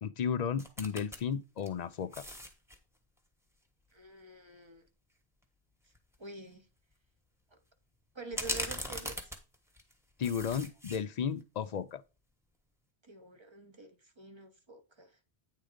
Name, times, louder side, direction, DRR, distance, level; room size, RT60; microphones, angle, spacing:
voice 1, 0.0-2.2 10.2-12.0, left 7 dB, 55° left, 0.5 m, -34 dB
sound 1, 0.6-1.2 1.6-2.8 5.4-5.5 6.0-6.2 8.3-9.9 10.2-11.0 11.4-11.5, left 1 dB, 5° right, 1.0 m, -39 dB
voice 2, 3.9-4.9 6.2-6.7 7.5-7.6 8.1-9.3 13.0-15.2, right 3 dB, 30° right, 0.8 m, -47 dB
9.0 x 3.8 x 5.0 m
omnidirectional pair, 1.1 m